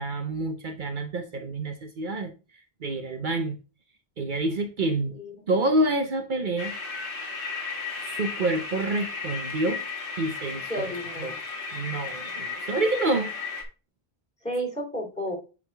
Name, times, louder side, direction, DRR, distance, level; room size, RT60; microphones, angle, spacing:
voice 1, 0.0-2.3 2.8-3.6 4.2-5.1 5.5-6.7 8.0-9.8 10.2-10.8 11.2-11.3 11.7-13.3, right 2 dB, 55° right, 0.9 m, -27 dB
voice 2, 5.1-5.5 10.5-11.3 14.4-15.4, equal, 5° left, 2.9 m, -32 dB
sound 1, 6.6-13.6, left 4 dB, 60° left, 1.8 m, -35 dB
9.0 x 3.8 x 3.4 m
omnidirectional pair, 1.0 m